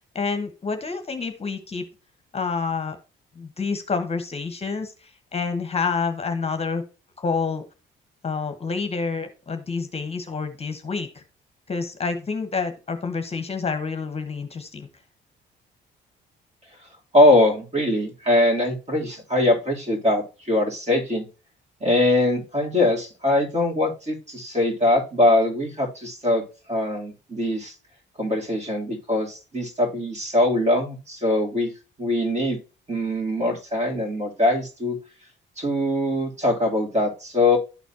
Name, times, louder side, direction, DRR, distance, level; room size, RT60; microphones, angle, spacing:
voice 1, 0.1-1.8 2.3-3.0 3.4-6.8 7.2-7.6 8.2-11.2 11.7-14.9, left 4 dB, 30° left, 8 dB, 1.0 m, -28 dB
voice 2, 17.1-21.3 21.8-26.4 26.7-27.7 28.2-31.7 32.0-32.6 32.9-35.0 35.6-37.6, left 1 dB, 35° right, 1 dB, 3.1 m, -22 dB
12.0 x 4.1 x 2.8 m, 0.33 s
cardioid pair, 90°, 20 cm